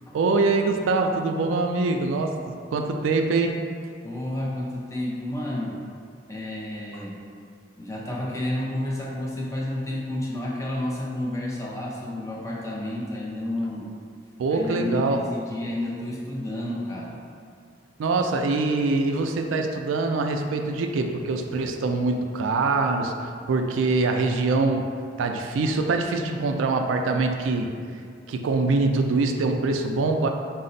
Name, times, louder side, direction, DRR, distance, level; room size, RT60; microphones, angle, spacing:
voice 1, 0.1-3.6 14.4-15.2 18.0-24.9 25.2-27.7 28.3-30.3, right 3 dB, 90° right, 4 dB, 0.3 m, -24 dB
voice 2, 4.0-5.8 6.3-7.2 7.8-13.9 14.5-17.2, left 1 dB, 15° left, -4 dB, 0.5 m, -30 dB
4.1 x 2.0 x 3.9 m, 2.3 s
head